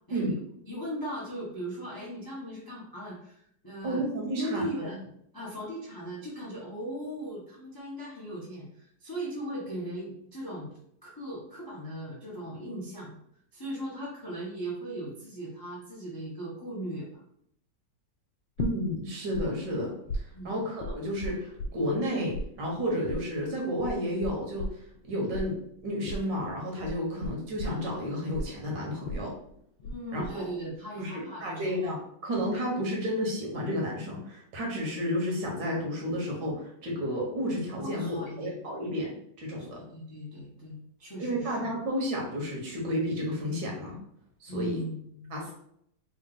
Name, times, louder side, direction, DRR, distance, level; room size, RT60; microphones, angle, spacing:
voice 1, 0.1-4.1 4.4-5.0 5.3-10.7 11.0-13.2 13.5-17.1 20.3-20.6 29.8-31.9 37.8-38.5 39.7-41.7 44.5-45.3, right 1 dB, 25° left, -5 dB, 0.4 m, -38 dB
voice 2, 3.8-4.7 18.6-24.7 25.1-25.6 25.8-29.3 30.1-30.5 31.0-32.0 32.2-39.8 41.2-44.0 44.4-44.8 45.3-45.5, equal, 75° right, -1 dB, 1.7 m, -31 dB
sound 1, 18.6-19.4 19.7-22.1 22.3-30.0 30.2-30.7, left 1 dB, 75° left, 1.1 m, -36 dB
3.8 x 2.3 x 3.8 m, 0.71 s
omnidirectional pair, 1.9 m